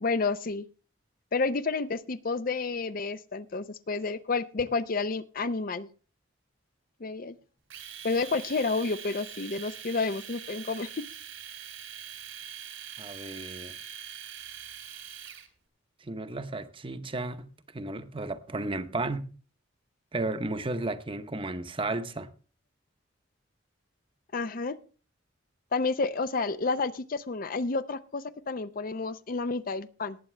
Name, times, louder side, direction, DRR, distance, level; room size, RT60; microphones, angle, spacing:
voice 1, 0.0-0.6 1.3-5.9 7.0-7.4 8.0-11.0 24.3-24.8 25.7-30.2, left 4 dB, 45° left, 0.5 m, -30 dB
Domestic sounds home sounds, 7.7-15.5, right 8 dB, 85° right, 2.6 m, -43 dB
voice 2, 13.0-13.7 16.0-17.5 17.7-19.3 20.1-22.3, right 2 dB, 25° right, 0.8 m, -33 dB
19.0 x 8.4 x 3.3 m
head